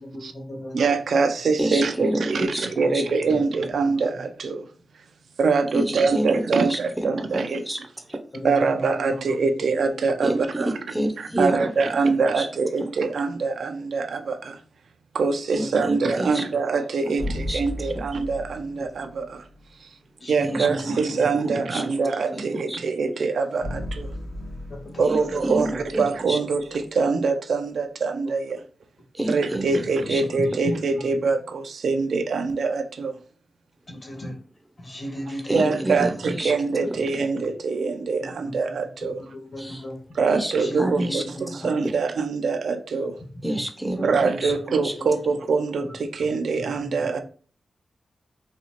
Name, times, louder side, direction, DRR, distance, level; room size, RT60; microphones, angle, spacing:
voice 1, 0.0-0.7 2.3-2.9 4.1-4.2 8.3-10.1 15.6-15.7 20.2-21.0 21.4-21.5 21.9-22.3 25.2-25.3 25.7-25.8 29.9-30.0 30.3-30.5 34.0-34.4 34.8-36.0 36.4-36.5 38.4-38.6 39.0-40.0 40.6-41.2 41.6-41.7 44.0-44.6 45.0-45.1 46.7-47.2, equal, 45° left, 1.3 m, -36 dB
voice 2, 0.7-4.7 5.4-7.6 8.4-10.8 11.2-14.6 15.1-19.5 19.8-19.9 20.3-24.1 25.0-28.6 29.3-33.2 35.5-39.2 40.1-43.2 44.0-47.2, right 4 dB, 80° right, 0.4 m, -24 dB
voice 3, 1.6-2.1 2.5-2.7 2.9-3.0 5.7-6.8 7.1-7.8 10.2-11.7 12.4-12.5 12.8-12.9 15.5-16.4 17.0-17.1 17.5-17.6 20.5-20.9 21.7-21.8 22.3-22.8 25.1-25.2 25.4-26.4 29.1-29.6 30.1-30.2 35.3-36.5 39.6-39.8 40.3-40.5 40.8-41.2 41.6-41.7 43.4-44.1 44.4-44.5 44.8-44.9, right 1 dB, 10° right, 0.6 m, -28 dB
Space Braaams, 17.2-19.4 23.6-26.8, left 1 dB, 70° left, 1.3 m, -35 dB
4.1 x 2.4 x 2.9 m
wide cardioid pair, 95°, 0 cm